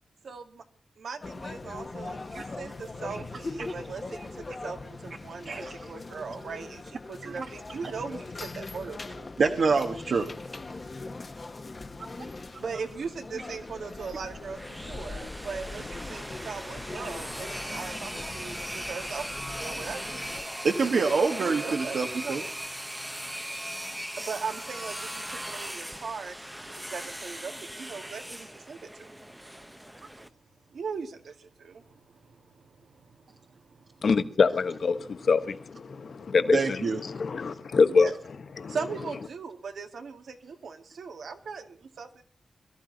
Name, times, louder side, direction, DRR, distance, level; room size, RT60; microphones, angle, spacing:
voice 1, 1.0-9.3 12.6-20.3 21.6-22.5 24.2-29.2 30.7-34.1 35.9-36.4 37.4-37.5 37.9-38.1 38.6-42.2, right 5 dB, 80° right, 2.0 m, -39 dB
sound 1, 1.2-20.4, left 3 dB, 30° left, 1.1 m, -41 dB
voice 2, 5.4-5.9 7.2-7.5 9.4-10.3 12.2-12.6 16.3-16.5 16.9-17.1 20.6-22.4 36.5-37.0, right 4 dB, 65° right, 1.5 m, -27 dB
sound 2, 14.3-30.3, equal, 5° right, 0.8 m, -39 dB
voice 3, 34.0-38.1 38.6-38.7, left 4 dB, 55° left, 1.2 m, -25 dB
22.5 x 14.0 x 4.0 m
wide cardioid pair, 160°, 0 cm